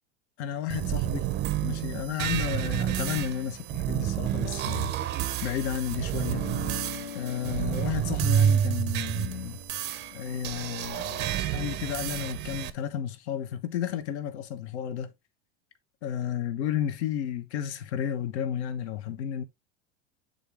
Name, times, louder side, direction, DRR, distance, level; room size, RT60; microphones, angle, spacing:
voice 1, 0.4-1.3 1.6-5.1 5.4-6.4 7.1-9.6 10.1-15.1 16.0-19.4, left 9 dB, 75° left, 1.0 m, -32 dB
sound 1, 0.7-12.7, right 10 dB, 30° right, 0.5 m, -29 dB
sound 2, 6.1-10.9, left 9 dB, 45° left, 1.6 m, -44 dB
7.9 x 3.8 x 3.4 m
supercardioid pair, 125°, 34 cm